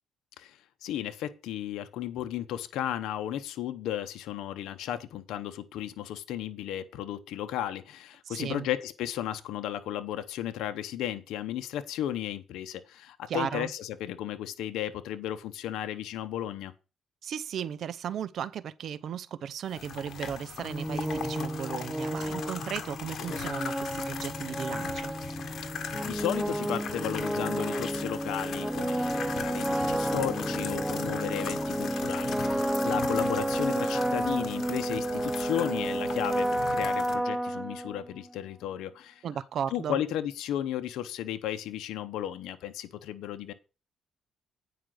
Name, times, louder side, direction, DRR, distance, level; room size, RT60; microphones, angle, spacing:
voice 1, 0.4-16.7 26.0-39.2 39.7-43.5, left 11 dB, 90° left, 0.8 m, -34 dB
voice 2, 8.3-8.7 13.3-13.7 17.2-25.1 32.9-33.0 39.2-40.0, right 8 dB, 65° right, 0.6 m, -35 dB
sound 1, 19.7-37.1, left 7 dB, 65° left, 1.6 m, -39 dB
sound 2, 20.6-38.3, right 1 dB, 5° right, 0.8 m, -31 dB
9.3 x 5.0 x 6.2 m
cardioid pair, 90°, 0 cm